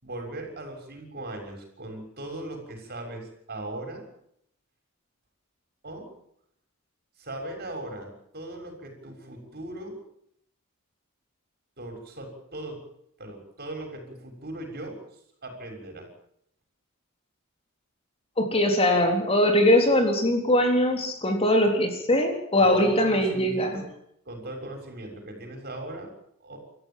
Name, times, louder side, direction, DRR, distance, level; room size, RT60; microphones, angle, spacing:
voice 1, 0.0-4.0 5.8-6.1 7.2-9.9 11.8-12.8 13.2-15.0 15.4-16.1 22.6-23.8 24.2-26.1 26.4-26.6, right 1 dB, 45° right, 4 dB, 6.7 m, -38 dB
voice 2, 18.4-23.8, left 1 dB, 25° left, 4 dB, 3.7 m, -21 dB
27.0 x 14.5 x 7.5 m, 0.72 s
head